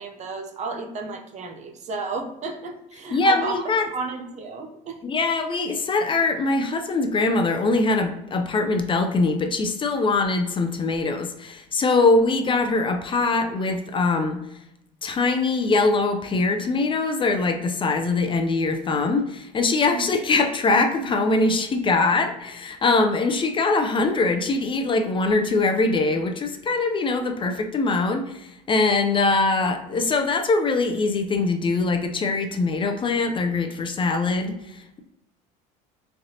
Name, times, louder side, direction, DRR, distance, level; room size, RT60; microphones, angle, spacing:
voice 1, 0.0-3.6 3.9-5.0 19.9-20.2 27.4-27.6, right 4 dB, 40° right, 4 dB, 0.7 m, -33 dB
voice 2, 3.1-3.9 5.0-14.4 15.0-35.0, left 3 dB, 30° left, 5 dB, 0.5 m, -22 dB
3.8 x 3.3 x 2.7 m, 0.86 s
supercardioid pair, 95°, 18 cm